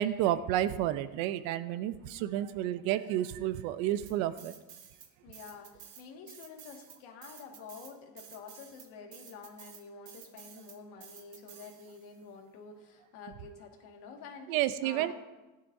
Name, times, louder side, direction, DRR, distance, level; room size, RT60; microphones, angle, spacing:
voice 1, 0.0-4.5 14.5-15.1, right 12 dB, 85° right, 13 dB, 0.8 m, -30 dB
sound 1, 4.1-5.1 5.3-12.2, right 8 dB, 45° right, 1.2 m, -52 dB
voice 2, 5.2-15.1, left 5 dB, 60° left, 1 dB, 2.0 m, -49 dB
16.5 x 10.5 x 2.7 m, 1.1 s
cardioid pair, 180°, 44 cm